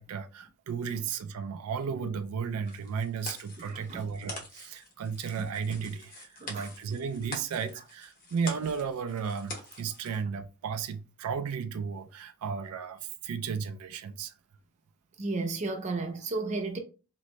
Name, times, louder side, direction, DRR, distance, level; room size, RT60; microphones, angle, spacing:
voice 1, 0.0-14.3, right 6 dB, 80° right, 0.3 m, -34 dB
sound 1, 2.6-10.2, left 2 dB, 40° left, 1.0 m, -45 dB
voice 2, 3.6-4.1 5.4-5.5 6.4-6.7 15.2-16.8, right 3 dB, 30° right, 0.6 m, -33 dB
3.1 x 2.6 x 3.0 m
head